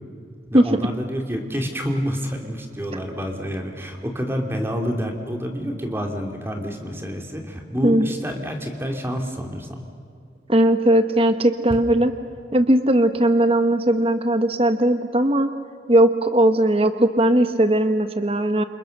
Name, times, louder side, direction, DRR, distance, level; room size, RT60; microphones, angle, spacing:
voice 1, 0.5-9.8, equal, 15° right, 3 dB, 2.8 m, -28 dB
voice 2, 10.5-12.1 12.5-15.5 15.9-18.6, right 1 dB, 30° right, 9 dB, 1.1 m, -18 dB
29.0 x 27.5 x 6.6 m, 2.3 s
head